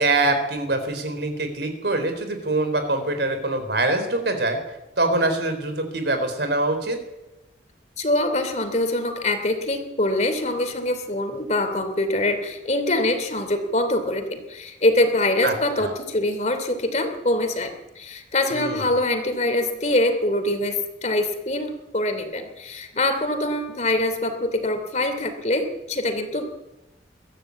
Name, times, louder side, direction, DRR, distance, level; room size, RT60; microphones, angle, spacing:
voice 1, 0.0-4.6 5.0-7.0 15.4-15.9 18.5-18.9, right 2 dB, 65° right, 7 dB, 4.0 m, -24 dB
voice 2, 8.0-26.4, left 1 dB, 40° left, 7 dB, 2.9 m, -24 dB
23.0 x 14.0 x 8.5 m, 0.97 s
head